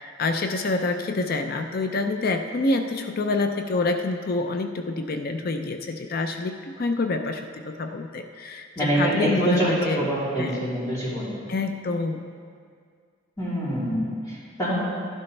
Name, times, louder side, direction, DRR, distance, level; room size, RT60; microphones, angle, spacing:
voice 1, 0.0-10.1 10.4-10.6 11.5-12.3, left 3 dB, 50° left, 6 dB, 0.5 m, -27 dB
voice 2, 8.7-11.4 13.4-14.7, right 1 dB, 20° left, -9 dB, 3.2 m, -25 dB
12.0 x 11.0 x 3.3 m, 2.1 s
head